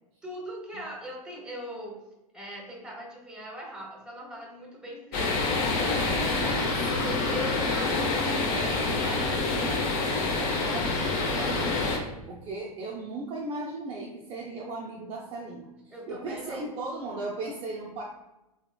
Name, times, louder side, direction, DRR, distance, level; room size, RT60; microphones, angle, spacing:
voice 1, 0.2-1.9 2.3-5.4 6.8-9.5 15.9-16.7, equal, 5° right, -1 dB, 0.9 m, -40 dB
sound 1, 5.1-12.0, left 3 dB, 45° left, 0.7 m, -27 dB
voice 2, 6.1-7.9 10.4-11.1 11.3-11.9 12.3-18.0, right 2 dB, 30° right, -3 dB, 0.5 m, -37 dB
3.4 x 3.0 x 2.2 m, 0.96 s
figure-of-eight pair, 95°, 19 cm